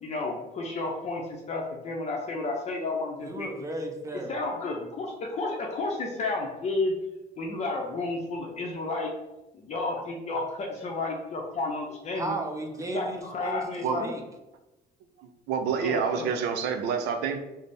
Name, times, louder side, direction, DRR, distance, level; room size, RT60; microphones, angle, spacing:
voice 1, 0.0-3.5 4.3-6.9 7.4-9.1 9.5-12.3 12.8-14.1 15.8-16.3, left 3 dB, 40° left, 0 dB, 0.6 m, -32 dB
voice 2, 3.2-4.3 10.3-10.4 12.2-13.6 14.0-14.2, right 2 dB, 20° right, 3 dB, 0.6 m, -34 dB
voice 3, 15.2-17.4, right 6 dB, 80° right, 6 dB, 0.5 m, -28 dB
3.3 x 2.0 x 4.0 m, 0.99 s
cardioid pair, 110°, 17 cm